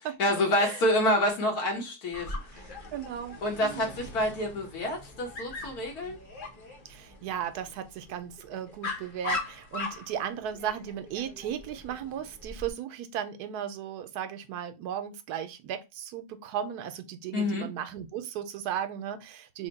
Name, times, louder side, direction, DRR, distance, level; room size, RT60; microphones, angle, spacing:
voice 1, 0.2-2.3 3.4-6.2 17.3-17.7, left 1 dB, 75° left, 1.5 m, -27 dB
Dog, 2.1-12.7, left 3 dB, 40° left, 0.9 m, -40 dB
voice 2, 2.9-3.9 6.9-19.7, right 9 dB, 85° right, 1.1 m, -36 dB
3.5 x 2.1 x 3.8 m
omnidirectional pair, 1.6 m